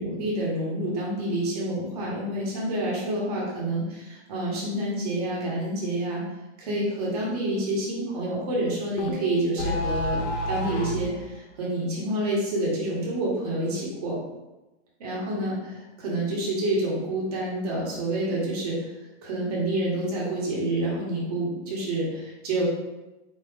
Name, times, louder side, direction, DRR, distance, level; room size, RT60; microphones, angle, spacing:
voice 1, 0.0-6.2 6.6-14.2 15.0-18.9 19.2-22.7, right 1 dB, 30° right, -4 dB, 1.3 m, -28 dB
sound 1, 9.0-11.1, left 1 dB, 70° left, 0.9 m, -29 dB
4.8 x 3.0 x 3.7 m, 1.1 s
hypercardioid pair, 175°, 36 cm